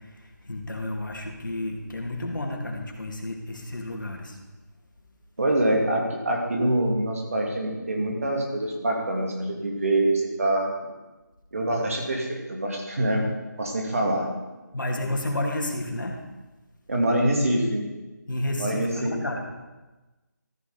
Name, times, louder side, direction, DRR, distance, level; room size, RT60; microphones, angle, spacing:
voice 1, 0.0-4.4 14.7-16.2 18.3-19.6, left 1 dB, 85° left, 1 dB, 2.4 m, -31 dB
voice 2, 5.4-10.7 11.5-14.3 16.9-17.9 18.6-19.1, right 1 dB, 45° right, 0 dB, 2.4 m, -25 dB
13.5 x 6.6 x 5.1 m, 1.1 s
figure-of-eight pair, 175°, 10 cm